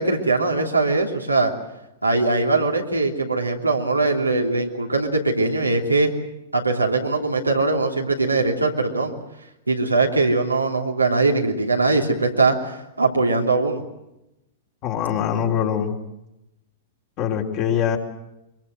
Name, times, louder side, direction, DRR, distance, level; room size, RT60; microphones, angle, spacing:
voice 1, 0.0-1.5 2.0-6.1 6.5-9.1 9.7-13.8, right 3 dB, 85° right, 1 dB, 3.0 m, -21 dB
voice 2, 14.8-15.9 17.2-18.0, left 8 dB, 40° left, 1 dB, 3.8 m, -23 dB
24.0 x 22.5 x 7.9 m, 0.90 s
figure-of-eight pair, 100°, 0 cm